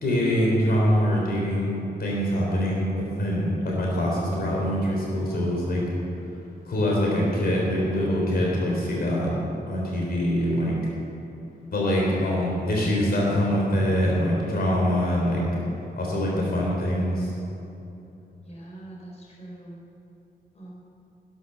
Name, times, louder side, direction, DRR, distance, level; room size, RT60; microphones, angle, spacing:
voice 1, 0.0-5.8 6.7-9.3 9.7-10.7 11.7-15.4 16.0-17.3, equal, 60° left, -3 dB, 3.6 m, -24 dB
voice 2, 18.5-19.8 20.5-20.7, right 1 dB, 35° left, -4 dB, 3.8 m, -43 dB
15.0 x 12.5 x 6.7 m, 2.9 s
wide cardioid pair, 150°, 18 cm